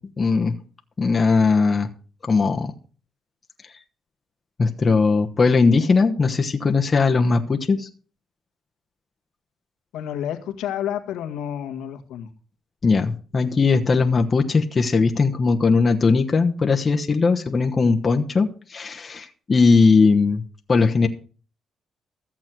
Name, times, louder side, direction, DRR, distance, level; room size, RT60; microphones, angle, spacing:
voice 1, 0.2-0.6 1.0-1.9 2.2-2.7 4.6-7.9 12.8-20.4 20.7-21.1, left 4 dB, 35° left, 4 dB, 1.1 m, -19 dB
voice 2, 9.9-12.3, left 10 dB, 90° left, 7 dB, 1.7 m, -30 dB
14.5 x 7.5 x 6.2 m, 0.39 s
cardioid pair, 90°, 0 cm